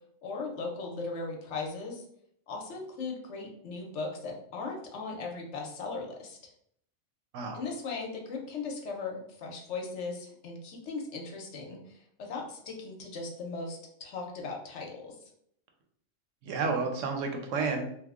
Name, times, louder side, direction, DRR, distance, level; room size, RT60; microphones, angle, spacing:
voice 1, 0.2-2.0 2.5-6.4 7.5-15.1, left 4 dB, 70° left, 1 dB, 1.0 m, -38 dB
voice 2, 16.4-18.0, right 4 dB, 80° right, 3 dB, 1.0 m, -31 dB
2.9 x 2.0 x 3.5 m, 0.70 s
omnidirectional pair, 1.3 m